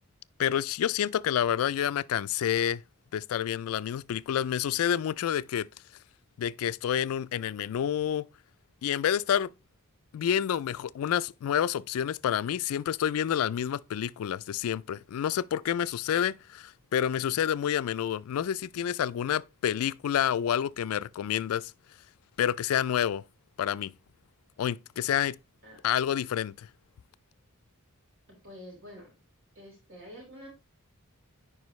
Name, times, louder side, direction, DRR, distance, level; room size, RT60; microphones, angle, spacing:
voice 1, 0.4-2.8 3.1-5.7 6.4-8.3 8.8-9.5 10.1-21.7 22.4-23.2 23.6-23.9 24.6-25.4 25.8-26.7, left 9 dB, 70° left, 0.3 m, -28 dB
voice 2, 28.3-29.1 29.5-30.5, equal, 65° right, 4.6 m, -47 dB
9.6 x 4.9 x 3.1 m
head